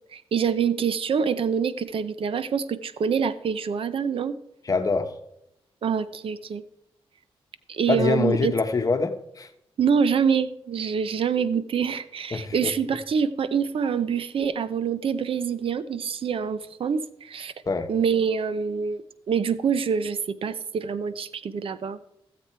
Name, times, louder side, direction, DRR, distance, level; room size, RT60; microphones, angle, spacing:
voice 1, 0.1-4.4 5.8-6.6 7.7-8.5 9.8-17.5 17.9-22.0, right 6 dB, 65° right, 14 dB, 0.6 m, -26 dB
voice 2, 4.7-5.1 7.9-9.5 12.3-12.7 17.7-17.9, left 4 dB, 35° left, 7 dB, 1.1 m, -24 dB
15.0 x 7.7 x 4.5 m, 0.79 s
cardioid pair, 95°, 10 cm